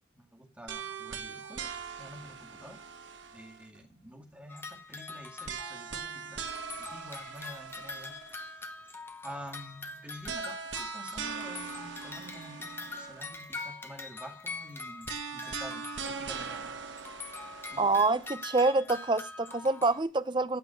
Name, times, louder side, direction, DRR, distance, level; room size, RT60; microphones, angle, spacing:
voice 1, 0.1-3.0 3.3-6.4 6.7-8.7 9.2-16.8 17.7-17.9, equal, 5° right, 2.2 m, -48 dB
sound 1, 0.7-3.8 5.4-8.4 10.2-13.4 15.0-18.5, right 6 dB, 70° right, 1.4 m, -41 dB
sound 2, 4.5-6.2 6.5-16.7 17.0-20.0, left 3 dB, 10° left, 0.9 m, -44 dB
voice 2, 17.8-20.6, right 3 dB, 25° right, 0.5 m, -26 dB
12.0 x 6.0 x 6.5 m
head